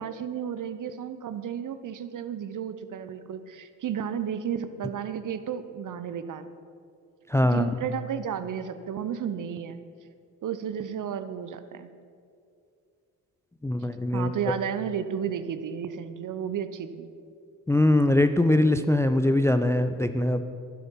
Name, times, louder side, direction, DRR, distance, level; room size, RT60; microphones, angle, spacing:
voice 1, 0.0-6.5 7.5-9.8 10.4-11.9 14.1-17.1, right 8 dB, 45° right, 12 dB, 0.9 m, -33 dB
voice 2, 7.3-7.7 13.6-14.3 17.7-20.4, left 1 dB, 5° left, 9 dB, 0.5 m, -22 dB
11.5 x 11.5 x 5.7 m, 2.4 s
hypercardioid pair, 50°, 44 cm